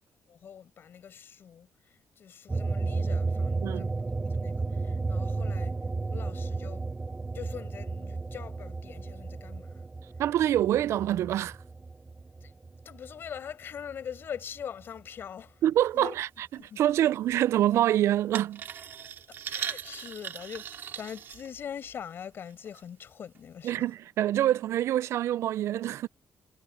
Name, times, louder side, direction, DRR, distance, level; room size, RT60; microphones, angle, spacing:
voice 1, 0.3-1.7 2.2-3.9 4.2-5.7 6.1-6.8 7.3-9.8 12.4-12.5 12.8-15.6 15.9-16.2 16.6-17.1 19.3-23.8, left 8 dB, 50° left, 5.6 m, -43 dB
sound 1, 2.5-13.4 13.8-15.2, right 3 dB, 15° right, 0.8 m, -33 dB
voice 2, 10.2-11.6 15.6-16.5 16.8-18.6 23.6-26.1, right 12 dB, 70° right, 0.4 m, -26 dB
sound 2, 18.4-22.0 22.5-22.8 23.4-23.5, right 8 dB, 50° right, 2.5 m, -39 dB
cardioid pair, 160°, 5 cm